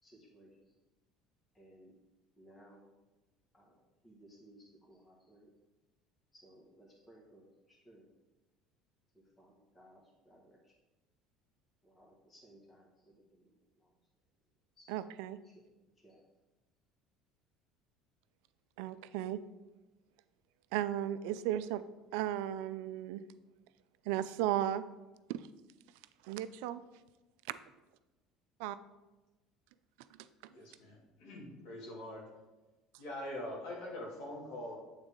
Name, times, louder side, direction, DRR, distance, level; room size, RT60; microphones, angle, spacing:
voice 1, 0.0-0.7 1.5-2.0 2.4-2.9 3.5-5.5 6.3-8.1 9.1-10.8 11.8-13.5 13.8-13.9 14.8-14.9 15.4-15.6 16.0-16.2, right 1 dB, 20° left, -2 dB, 1.6 m, -61 dB
voice 2, 14.9-15.4 18.8-19.4 20.7-21.8 22.1-23.2 24.1-24.8 25.3-25.4 26.2-26.8 27.5-27.6 28.6-28.8, right 12 dB, 80° right, 14 dB, 0.3 m, -35 dB
voice 3, 30.5-32.2 33.0-34.8, left 1 dB, 75° left, -3 dB, 2.3 m, -43 dB
8.1 x 3.9 x 3.6 m, 1.1 s
supercardioid pair, 105°, 0 cm